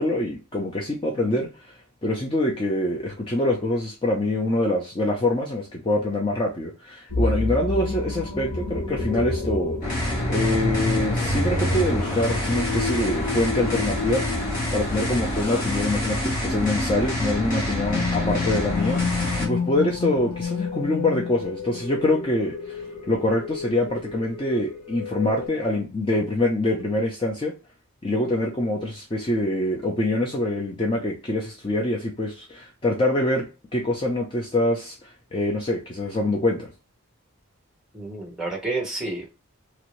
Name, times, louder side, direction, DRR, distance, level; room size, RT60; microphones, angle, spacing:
voice 1, 0.0-1.7 2.0-14.2 14.7-27.5 28.0-33.4 33.7-36.7, left 1 dB, 25° left, 0.5 m, -25 dB
sound 1, 7.1-25.5, left 3 dB, 85° left, 1.3 m, -30 dB
sound 2, 9.8-19.5, left 1 dB, 40° left, 1.2 m, -27 dB
voice 2, 37.9-39.3, right 2 dB, 5° right, 0.9 m, -30 dB
2.9 x 2.6 x 3.0 m
head